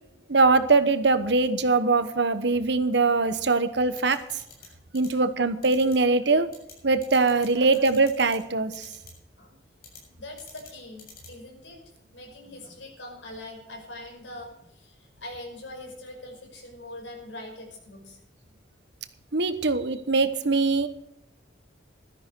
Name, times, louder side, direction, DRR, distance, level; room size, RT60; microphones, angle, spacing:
voice 1, 0.3-4.2 4.9-6.5 6.8-8.9 19.3-20.9, right 3 dB, 65° right, 11 dB, 1.1 m, -22 dB
sound 1, 4.0-4.7 4.9-5.1 5.6-5.9 6.5-6.7 7.0-7.5 7.7-8.4 8.7-9.1 9.8-10.0 10.4-10.7 11.0-11.3, left 5 dB, 55° left, 7.6 m, -46 dB
voice 2, 7.5-7.9 9.4-9.6 10.2-11.8 12.1-18.2, left 1 dB, 80° left, 1 dB, 5.7 m, -43 dB
15.5 x 13.5 x 4.6 m, 0.81 s
head